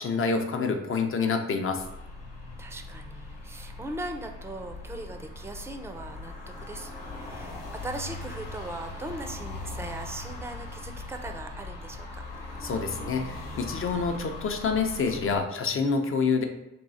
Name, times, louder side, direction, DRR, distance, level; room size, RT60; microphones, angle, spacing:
voice 1, 0.0-1.8 12.6-16.4, left 5 dB, 40° left, 5 dB, 0.7 m, -27 dB
sound 1, 1.8-15.4, left 2 dB, 75° left, 1.1 m, -40 dB
voice 2, 2.6-12.2, right 2 dB, 10° right, 5 dB, 0.5 m, -39 dB
3.6 x 2.4 x 4.1 m, 0.91 s
supercardioid pair, 60°, 33 cm